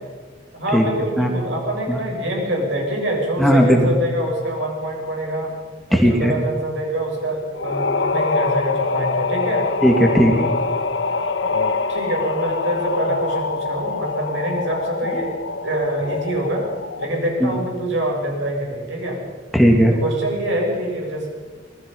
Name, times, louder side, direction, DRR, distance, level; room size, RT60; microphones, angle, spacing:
voice 1, 0.5-5.6 5.9-9.7 11.9-15.3 15.6-16.6 17.0-19.2 20.0-21.3, right 1 dB, 65° right, 0 dB, 7.7 m, -25 dB
voice 2, 3.4-3.9 5.9-6.3 9.8-10.5 17.4-17.5 19.5-19.9, equal, ahead, 1 dB, 2.4 m, -15 dB
sound 1, 7.5-17.3, left 4 dB, 70° left, 1.1 m, -24 dB
26.0 x 20.0 x 5.5 m, 1.4 s
head